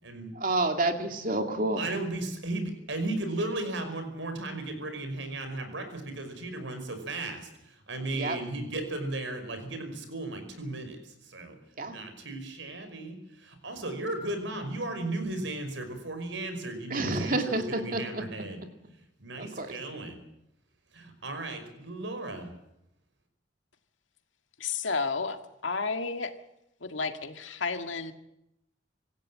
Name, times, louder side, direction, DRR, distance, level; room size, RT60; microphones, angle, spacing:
voice 1, 0.3-1.9 8.2-8.4 11.8-12.0 16.9-18.2 19.4-19.7, right 2 dB, 45° right, 5 dB, 2.6 m, -29 dB
voice 2, 1.8-11.6 11.9-18.6 19.2-20.2 20.9-22.5, right 2 dB, 75° right, 8 dB, 5.6 m, -35 dB
voice 3, 24.6-26.3 26.8-28.1, left 4 dB, 85° left, 6 dB, 2.1 m, -32 dB
26.5 x 15.5 x 7.7 m, 0.82 s
head